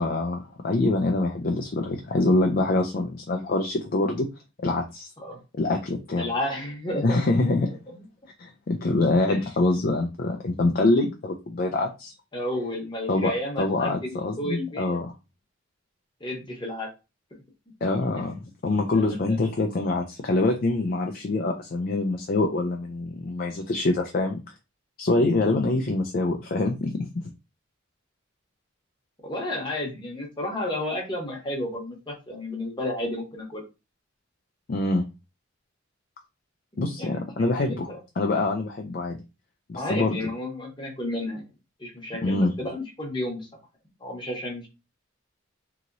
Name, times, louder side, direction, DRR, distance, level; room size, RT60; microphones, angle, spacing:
voice 1, 0.0-4.3 4.6-5.1 5.6-6.3 7.0-7.7 8.4-12.1 13.1-15.1 17.8-24.4 25.0-27.2 34.7-35.0 36.8-39.2 39.7-40.2 42.2-42.5, left 2 dB, 45° left, 3 dB, 0.4 m, -25 dB
voice 2, 6.2-7.6 7.9-8.0 9.3-9.5 12.3-15.0 16.2-16.9 18.9-19.2 29.2-33.6 37.0-37.8 39.7-41.4 41.8-43.5 44.0-44.7, left 1 dB, 20° left, -1 dB, 0.9 m, -32 dB
2.9 x 2.8 x 2.5 m, 0.27 s
head